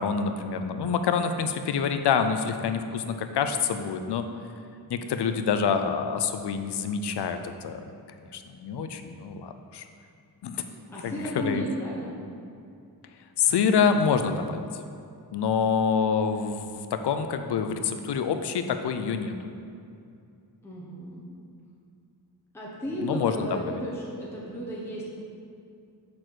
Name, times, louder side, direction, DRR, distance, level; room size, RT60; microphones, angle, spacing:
voice 1, 0.0-4.3 4.9-7.8 8.3-9.9 10.4-10.6 11.0-11.7 13.4-14.6 15.3-19.3 23.0-23.8, left 6 dB, 85° left, 8 dB, 0.6 m, -26 dB
voice 2, 10.9-12.1 20.6-21.2 22.5-25.1, equal, 5° left, -6 dB, 0.9 m, -34 dB
6.6 x 4.2 x 6.2 m, 2.5 s
wide cardioid pair, 175°, 39 cm